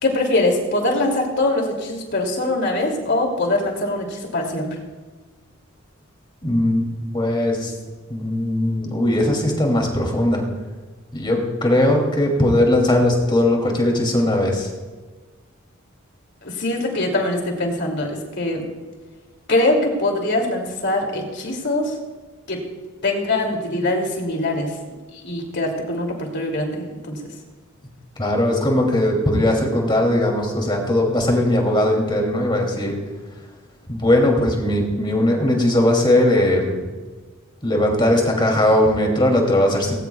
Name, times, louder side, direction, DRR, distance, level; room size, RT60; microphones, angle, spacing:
voice 1, 0.0-4.7 16.4-18.7 19.5-21.9 22.5-22.7 23.0-24.7 25.2-27.2, left 2 dB, 55° left, 2 dB, 2.8 m, -22 dB
voice 2, 6.4-7.7 8.1-10.4 11.1-14.7 28.2-32.9 33.9-36.8 37.6-39.9, left 1 dB, 20° left, 1 dB, 2.9 m, -19 dB
19.5 x 18.0 x 2.4 m, 1.3 s
head